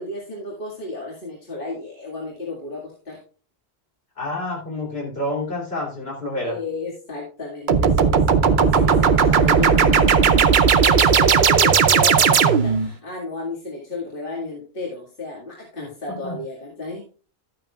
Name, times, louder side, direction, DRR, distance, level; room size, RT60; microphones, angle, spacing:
voice 1, 0.0-3.2 6.4-17.1, left 2 dB, 55° left, -4 dB, 2.2 m, -32 dB
voice 2, 4.2-6.6 9.2-10.9 16.2-16.4, left 2 dB, 70° left, -2 dB, 3.4 m, -30 dB
sound 1, 7.7-12.9, right 6 dB, 55° right, 0.7 m, -16 dB
12.0 x 9.0 x 2.3 m, 0.39 s
omnidirectional pair, 1.1 m